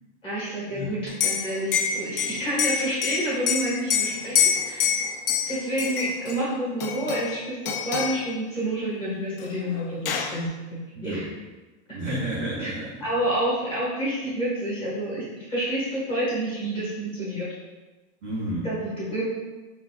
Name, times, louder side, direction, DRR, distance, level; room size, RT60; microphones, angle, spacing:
voice 1, 0.2-4.8 5.5-10.5 11.0-11.2 12.6-12.7 13.0-15.2 15.5-17.5 18.6-19.2, right 1 dB, 15° left, -7 dB, 1.3 m, -28 dB
Liquid, 1.1-6.4 6.8-7.4 7.7-8.2 9.4-9.5 9.8-10.4, left 7 dB, 55° left, 0.5 m, -26 dB
voice 2, 10.9-11.3 11.9-12.9 18.2-18.7, right 1 dB, 15° right, -9 dB, 0.4 m, -31 dB
5.0 x 4.1 x 2.2 m, 1.2 s
supercardioid pair, 180°, 34 cm